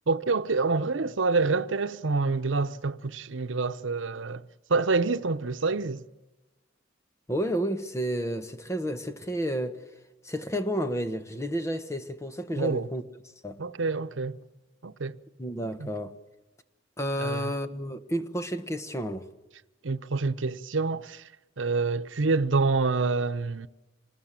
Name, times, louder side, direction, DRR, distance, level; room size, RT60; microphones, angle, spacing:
voice 1, 0.1-6.0 12.6-12.9 13.6-14.4 14.8-15.2 15.8-15.9 17.2-17.5 19.8-21.3 21.6-23.7, right 3 dB, 90° right, 0.8 m, -27 dB
voice 2, 7.3-9.8 10.2-13.0 13.4-13.6 15.4-16.1 17.0-19.2, equal, 15° left, 1.3 m, -31 dB
26.0 x 20.0 x 7.6 m
head